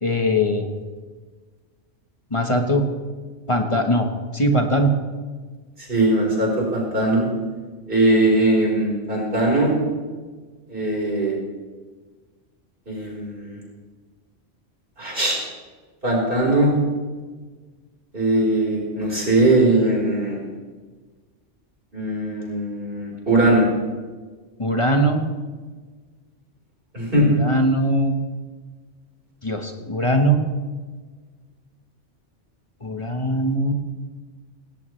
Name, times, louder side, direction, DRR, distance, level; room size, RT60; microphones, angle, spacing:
voice 1, 0.0-0.7 2.3-2.9 3.5-4.1 4.3-4.9 24.6-25.2 27.2-28.2 29.4-30.4 32.8-33.7, equal, 25° left, 4 dB, 1.3 m, -20 dB
voice 2, 5.9-7.3 7.9-9.7 10.7-11.3 12.9-13.6 15.0-15.4 16.0-16.7 18.1-20.4 21.9-23.6 26.9-27.3, right 2 dB, 45° right, -2 dB, 4.8 m, -20 dB
18.0 x 17.0 x 3.3 m, 1.4 s
omnidirectional pair, 1.2 m